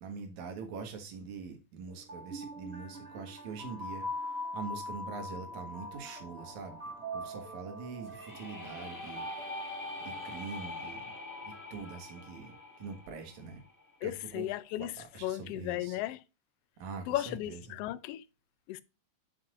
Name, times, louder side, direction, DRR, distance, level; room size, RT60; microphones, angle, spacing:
voice 1, 0.0-6.8 7.1-9.3 10.0-11.1 11.5-13.6 14.0-14.5 15.0-16.0 16.8-17.8, right 5 dB, 75° right, 2.9 m, -44 dB
sound 1, 1.9-13.0, equal, 25° right, 1.8 m, -43 dB
sound 2, 8.0-13.9, left 3 dB, 15° left, 0.5 m, -44 dB
voice 2, 14.0-15.0 15.2-16.2 17.1-18.2 18.7-18.8, left 14 dB, 85° left, 1.3 m, -35 dB
7.8 x 7.2 x 2.5 m
omnidirectional pair, 3.3 m